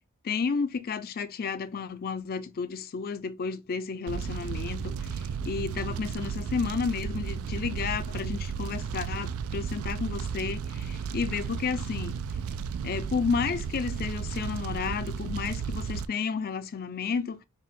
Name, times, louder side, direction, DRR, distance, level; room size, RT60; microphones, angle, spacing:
voice 1, 0.2-12.2 12.8-17.4, left 5 dB, 45° left, 0.4 m, -32 dB
Fire, 4.1-16.1, right 6 dB, 75° right, 0.3 m, -34 dB
5.3 x 2.2 x 3.2 m
head